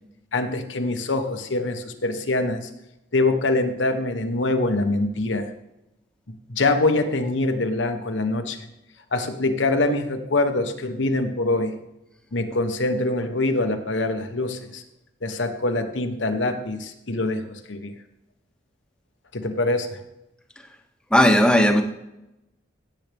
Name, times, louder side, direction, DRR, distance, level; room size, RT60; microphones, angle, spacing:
voice 1, 0.3-2.7 3.1-5.5 6.5-8.6 9.1-11.8 12.3-14.8 15.2-17.9 19.3-20.0, left 2 dB, 85° left, 7 dB, 1.2 m, -24 dB
voice 2, 21.1-21.8, equal, 5° left, 4 dB, 1.0 m, -16 dB
16.0 x 7.9 x 3.5 m, 0.90 s
head